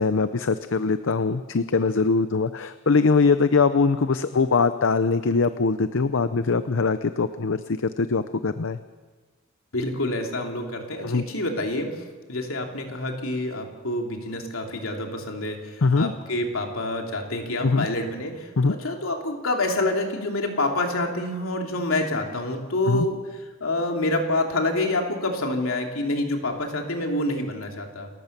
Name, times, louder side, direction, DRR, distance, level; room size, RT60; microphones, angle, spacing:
voice 1, 0.0-8.8 11.0-11.2 15.8-16.1 17.6-17.9 18.6-18.7 22.9-23.1, left 4 dB, 65° left, 12 dB, 0.7 m, -22 dB
voice 2, 9.7-12.0 12.3-23.2 23.6-28.1, left 2 dB, 85° left, 2 dB, 3.1 m, -27 dB
29.0 x 14.0 x 6.8 m, 1.3 s
head